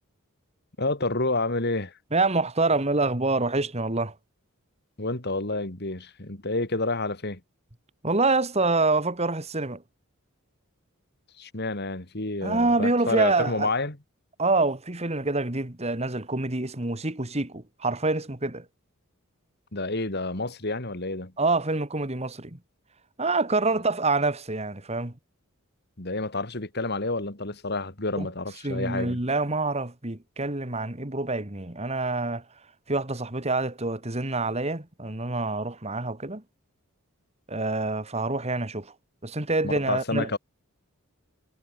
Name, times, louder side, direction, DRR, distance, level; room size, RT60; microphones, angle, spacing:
voice 1, 0.8-1.9 5.0-7.4 11.4-14.0 19.7-21.3 26.0-29.2 39.6-40.4, left 2 dB, 50° left, 2.9 m, -29 dB
voice 2, 2.1-4.1 8.0-9.8 12.4-13.7 14.4-18.7 21.4-22.6 23.2-25.1 28.2-28.3 28.6-32.4 32.9-36.4 37.5-38.9 39.2-40.3, right 3 dB, 30° right, 2.1 m, -26 dB
head